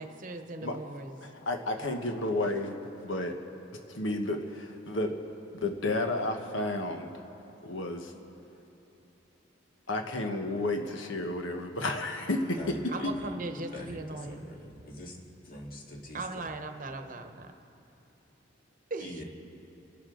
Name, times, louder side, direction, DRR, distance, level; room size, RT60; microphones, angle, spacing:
voice 1, 0.0-1.2 1.8-2.0 12.9-14.5 16.1-17.5 18.9-19.2, right 2 dB, 45° right, 6 dB, 1.0 m, -39 dB
voice 2, 1.2-2.7 3.0-3.3 3.9-5.2 5.5-7.1 7.6-8.1 9.9-12.8 13.0-13.1, left 2 dB, 80° left, 4 dB, 1.2 m, -31 dB
voice 3, 12.6-13.3 13.7-15.2 15.4-16.5 19.0-19.2, left 1 dB, 45° left, -1 dB, 2.1 m, -44 dB
29.5 x 11.5 x 3.9 m, 3.0 s
head